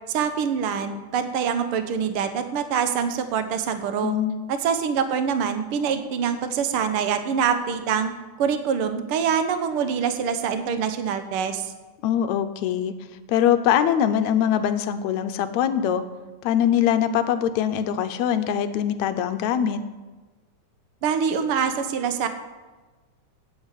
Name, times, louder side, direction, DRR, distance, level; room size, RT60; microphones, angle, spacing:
voice 1, 0.1-4.1 4.5-8.1 8.4-11.7 21.0-22.3, right 7 dB, 65° right, 9 dB, 1.4 m, -25 dB
voice 2, 4.0-4.4 12.0-12.9 13.3-16.0 16.4-19.8, left 9 dB, 80° left, 10 dB, 1.9 m, -22 dB
8.8 x 8.5 x 8.3 m, 1.3 s
omnidirectional pair, 3.5 m